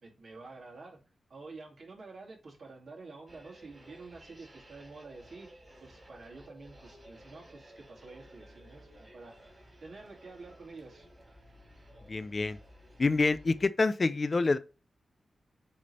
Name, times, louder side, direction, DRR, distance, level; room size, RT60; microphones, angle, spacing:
voice 1, 0.0-1.0 1.3-9.4 9.8-11.1, right 3 dB, 60° right, 2.7 m, -49 dB
sound 1, 3.3-13.7, equal, 20° right, 2.9 m, -55 dB
voice 2, 12.1-12.6 13.0-14.6, left 3 dB, 35° left, 0.5 m, -27 dB
8.5 x 3.5 x 4.2 m
wide cardioid pair, 130°, 0 cm